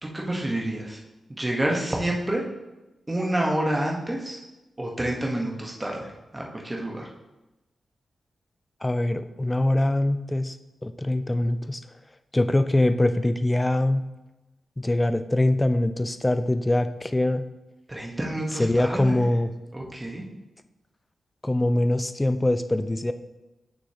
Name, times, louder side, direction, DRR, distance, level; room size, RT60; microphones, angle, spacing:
voice 1, 0.0-1.0 1.4-2.4 3.1-4.4 4.8-7.1 17.9-19.2 19.7-20.2, right 1 dB, 20° right, -1 dB, 1.2 m, -28 dB
voice 2, 8.8-10.6 10.8-11.8 12.3-14.0 14.8-17.4 18.6-19.5 21.4-23.1, left 1 dB, 15° left, 10 dB, 0.3 m, -23 dB
6.3 x 6.2 x 2.9 m, 1.0 s
wide cardioid pair, 95°, 0 cm